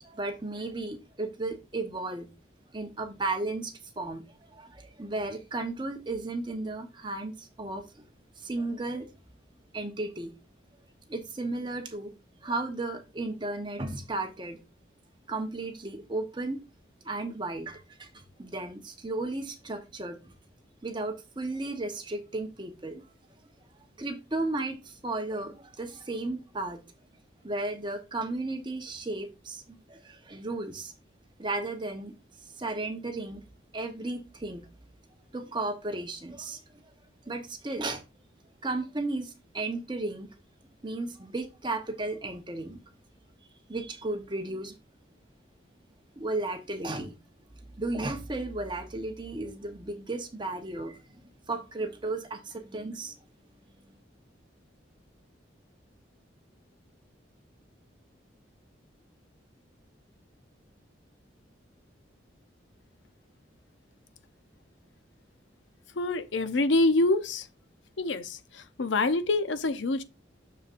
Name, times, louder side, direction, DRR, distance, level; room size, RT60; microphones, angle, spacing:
voice 1, 0.0-2.3 2.7-4.2 4.5-7.8 8.4-9.1 9.7-10.3 11.1-12.1 12.4-14.6 15.3-16.6 17.0-20.2 20.8-23.0 24.0-26.8 27.4-30.9 31.4-32.1 32.6-33.4 33.7-34.6 35.3-36.6 37.3-38.0 38.6-40.3 40.8-42.8 43.7-44.7 46.2-47.1 47.8-53.1, right 2 dB, 25° right, 1.0 m, -34 dB
voice 2, 66.0-67.5 68.0-70.0, left 2 dB, 80° left, 0.7 m, -26 dB
6.8 x 6.7 x 2.5 m
head